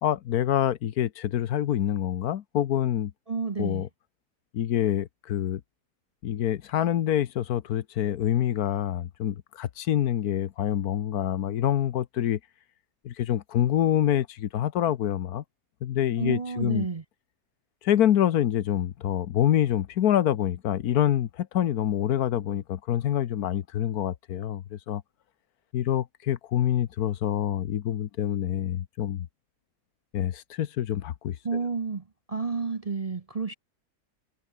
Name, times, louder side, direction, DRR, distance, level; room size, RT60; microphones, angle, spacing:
voice 1, 0.0-3.1 3.6-3.9 4.5-5.6 6.2-12.4 13.0-15.4 15.8-16.9 17.8-25.0 25.7-29.3 30.1-31.4, left 11 dB, 75° left, 1.3 m, -26 dB
voice 2, 3.3-3.8 16.2-17.0 31.4-32.0 32.3-33.5, right 4 dB, 35° right, 0.7 m, -30 dB
omnidirectional pair, 1.6 m